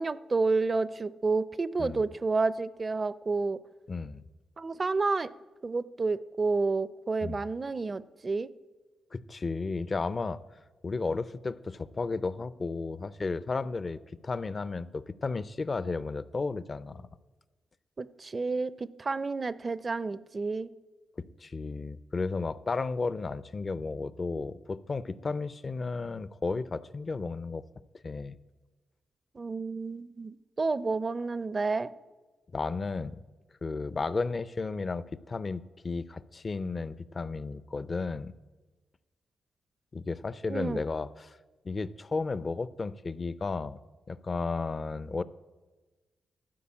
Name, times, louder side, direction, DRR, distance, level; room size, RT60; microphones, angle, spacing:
voice 1, 0.0-3.6 4.6-5.3 5.6-8.5 18.0-20.7 29.3-31.9 40.5-40.8, right 3 dB, 40° right, 17 dB, 0.5 m, -30 dB
voice 2, 3.9-4.2 7.2-7.4 9.1-10.4 10.8-17.1 21.4-27.6 28.0-28.4 32.5-33.2 33.6-38.3 39.9-41.4 41.6-43.8 44.1-45.2, left 4 dB, 40° left, 16 dB, 0.5 m, -33 dB
12.5 x 5.4 x 8.7 m, 1.2 s
supercardioid pair, 55°, 0 cm